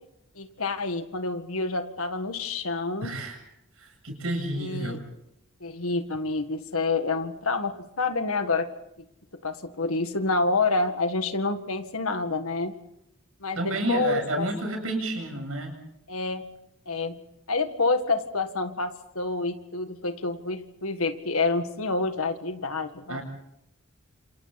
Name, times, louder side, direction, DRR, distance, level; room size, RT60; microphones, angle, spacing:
voice 1, 0.4-3.1 4.6-5.0 5.6-8.7 9.0-9.1 9.4-12.7 13.4-14.5 16.1-16.5 16.9-17.2 17.5-23.2, left 3 dB, 75° left, 7 dB, 1.9 m, -28 dB
voice 2, 3.0-3.4 3.7-5.0 13.5-15.8 23.1-23.2, right 1 dB, 75° right, 3 dB, 8.0 m, -30 dB
29.0 x 27.5 x 4.2 m, 0.80 s
head